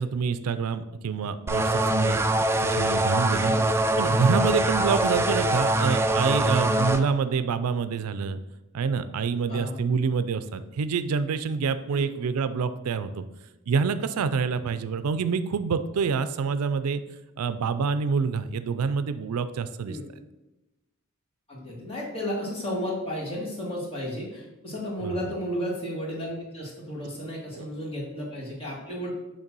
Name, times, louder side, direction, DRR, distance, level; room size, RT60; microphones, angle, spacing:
voice 1, 0.0-2.5 2.8-3.5 4.0-8.4 8.7-13.2 13.7-17.0 17.4-20.0 25.0-25.1 27.5-27.9, right 5 dB, 85° right, 12 dB, 0.4 m, -27 dB
sound 1, 1.5-7.0, right 1 dB, 10° right, 0.3 m, -23 dB
voice 2, 21.5-29.1, equal, 25° left, -4 dB, 1.9 m, -33 dB
6.6 x 3.2 x 6.0 m, 1.0 s
head